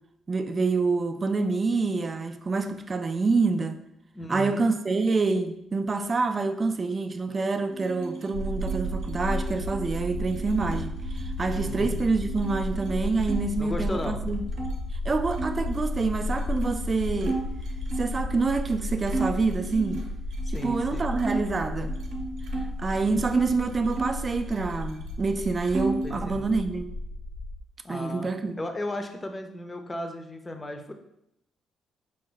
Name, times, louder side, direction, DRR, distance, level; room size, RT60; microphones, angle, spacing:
voice 1, 0.3-3.8 4.3-14.4 15.1-17.5 18.0-20.0 20.5-21.9 22.8-26.9 27.9-28.6, right 3 dB, 35° right, 0.3 m, -27 dB
voice 2, 4.1-4.6 11.6-12.0 13.6-14.2 20.5-21.1 26.0-26.5 27.8-28.3 28.6-30.9, left 1 dB, 20° left, 0.6 m, -35 dB
sound 1, 7.7-13.4 13.7-14.7 15.3-18.2 18.7-18.8 19.1-21.5 21.9-23.5 23.9-25.0 25.3-26.2, right 3 dB, 75° right, 0.7 m, -35 dB
sound 2, 8.3-27.6, left 1 dB, 85° left, 0.4 m, -33 dB
4.9 x 2.1 x 3.8 m
cardioid pair, 90°, 0 cm